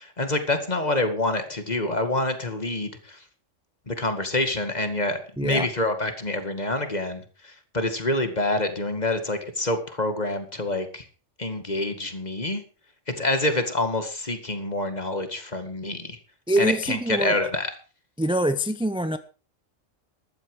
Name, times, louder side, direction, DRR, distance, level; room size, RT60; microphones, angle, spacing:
voice 1, 0.0-3.2 3.9-11.1 11.4-12.6 13.1-16.2 16.6-17.7, left 2 dB, 35° left, 8 dB, 2.3 m, -27 dB
voice 2, 5.4-5.7 16.5-17.4 18.2-19.2, right 1 dB, 5° right, 11 dB, 0.6 m, -24 dB
14.5 x 12.0 x 5.0 m, 0.37 s
omnidirectional pair, 1.3 m